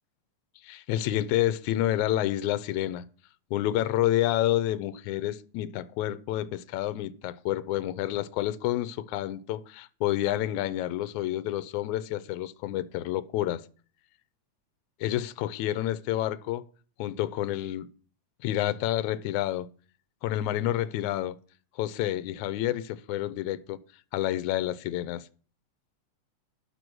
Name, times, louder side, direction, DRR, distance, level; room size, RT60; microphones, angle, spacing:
voice 1, 0.6-3.0 3.5-13.6 15.0-16.6 17.0-17.9 18.4-19.7 20.2-21.4 21.8-23.8 24.1-25.3, left 13 dB, 85° left, 2.0 m, -29 dB
11.0 x 6.7 x 6.1 m
omnidirectional pair, 3.3 m